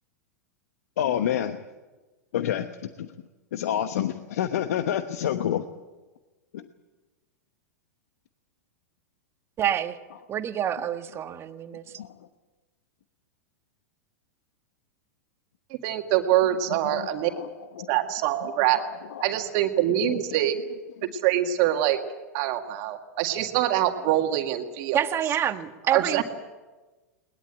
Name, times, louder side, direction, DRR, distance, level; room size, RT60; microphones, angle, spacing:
voice 1, 1.0-1.6 2.3-2.7 3.0-3.1 3.5-5.6 6.5-6.6 12.0-12.1 16.7-17.5 17.8-17.9 18.4-18.5 18.8-19.3 20.1-20.2 21.0-21.1, left 10 dB, 65° left, 10 dB, 1.0 m, -28 dB
voice 2, 9.6-10.0 10.3-11.8 24.9-26.2, right 10 dB, 30° right, 9 dB, 1.4 m, -27 dB
voice 3, 15.8-17.3 17.9-18.8 19.2-20.6 21.1-22.0 22.3-25.0 25.9-26.2, right 12 dB, 50° right, 5 dB, 2.0 m, -24 dB
21.0 x 20.5 x 9.1 m, 1.2 s
figure-of-eight pair, 95°, 9 cm